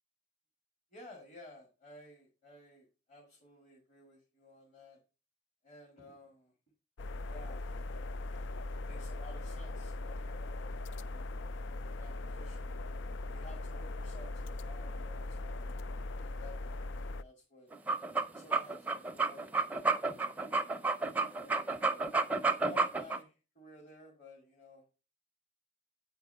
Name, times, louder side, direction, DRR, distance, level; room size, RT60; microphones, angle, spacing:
voice 1, 0.9-5.0 5.6-6.5 7.2-8.0 8.9-10.6 11.1-11.3 11.9-12.8 13.3-15.7 16.2-16.8 17.2-17.7 18.3-19.5 20.0-20.4 21.2-22.1 22.6-24.8, left 2 dB, 40° left, 0 dB, 1.9 m, -54 dB
sound 1, 7.0-17.2, left 2 dB, 80° left, 0.4 m, -40 dB
sound 2, 17.7-23.2, right 3 dB, 10° right, 0.5 m, -31 dB
8.6 x 4.6 x 5.4 m, 0.31 s
head